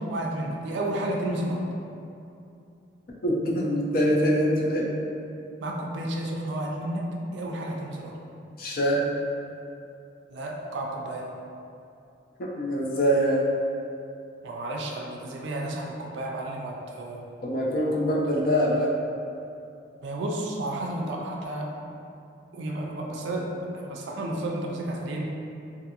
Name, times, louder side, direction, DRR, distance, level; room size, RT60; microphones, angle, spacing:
voice 1, 0.0-1.6 5.6-8.1 10.3-11.3 14.4-17.2 20.0-21.7 22.5-25.3, right 1 dB, 65° right, -1 dB, 0.3 m, -32 dB
voice 2, 3.2-4.9 8.6-9.0 12.4-13.5 17.4-18.9, equal, 50° left, -4 dB, 0.4 m, -24 dB
2.5 x 2.5 x 2.7 m, 2.7 s
head